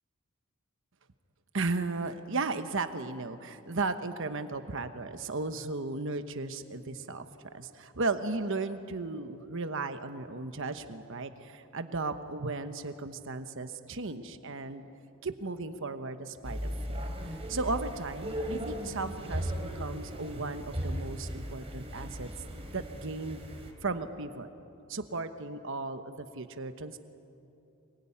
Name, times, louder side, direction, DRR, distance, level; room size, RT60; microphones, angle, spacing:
voice 1, 1.5-7.3 7.5-14.9 15.2-22.3 22.5-23.4 23.8-24.5 24.9-27.0, right 3 dB, 60° right, 9 dB, 1.1 m, -35 dB
sound 1, 16.4-23.7, equal, 25° right, 3.2 m, -37 dB
25.0 x 22.5 x 9.9 m, 2.8 s
head